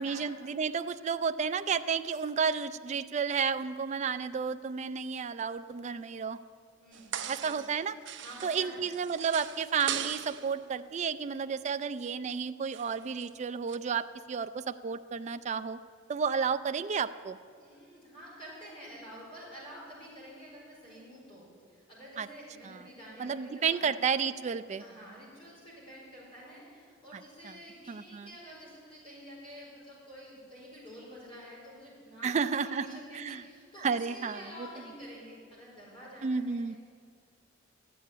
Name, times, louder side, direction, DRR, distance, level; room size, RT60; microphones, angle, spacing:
voice 1, 0.0-6.4 7.3-8.0 8.4-15.8 16.1-17.4 22.2-22.3 23.2-24.8 27.1-27.5 27.9-28.3 32.2-33.4 33.8-34.7 36.2-36.7, right 6 dB, 35° right, 11 dB, 0.3 m, -32 dB
voice 2, 6.8-7.6 8.2-8.8 17.6-23.9 24.8-36.8, equal, 25° left, -6 dB, 4.5 m, -49 dB
sound 1, 6.9-7.8 8.1-10.5 12.7-13.3 13.7-13.8, right 9 dB, 60° right, 0.7 m, -39 dB
13.0 x 8.6 x 9.6 m, 2.2 s
head